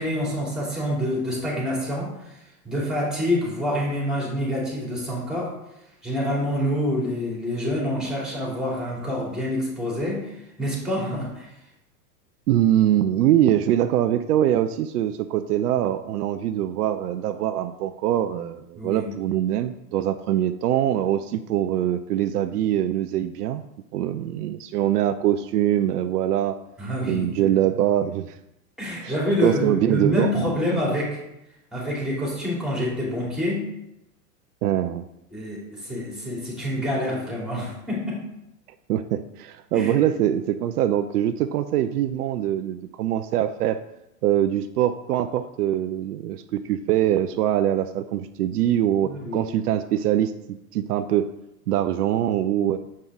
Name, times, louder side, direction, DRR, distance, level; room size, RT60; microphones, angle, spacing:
voice 1, 0.0-2.1 2.6-5.5 6.0-11.5 18.8-19.1 26.8-27.6 28.8-31.2 31.7-33.6 35.3-38.2 39.7-39.9 49.0-49.5, left 1 dB, ahead, -4 dB, 2.8 m, -27 dB
voice 2, 12.5-23.6 23.9-26.6 27.1-28.3 29.0-29.1 29.4-30.3 34.6-35.1 38.9-43.8 44.2-51.3 51.7-52.8, right 11 dB, 70° right, 10 dB, 0.6 m, -23 dB
7.6 x 5.4 x 3.6 m, 0.86 s
hypercardioid pair, 120°, 48 cm